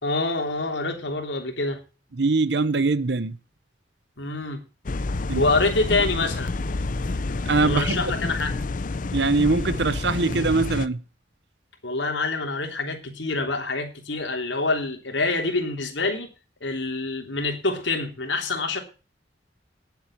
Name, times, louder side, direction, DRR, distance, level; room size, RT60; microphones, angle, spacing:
voice 1, 0.0-1.8 4.2-4.6 5.2-6.5 7.6-8.5 11.8-16.3 16.6-18.8, left 3 dB, 80° left, 3.2 m, -26 dB
voice 2, 2.2-3.4 5.3-5.4 7.5-8.1 9.1-11.0, right 3 dB, 65° right, 0.8 m, -22 dB
sound 1, 4.9-10.9, left 3 dB, 45° left, 0.6 m, -28 dB
11.0 x 8.0 x 7.4 m
head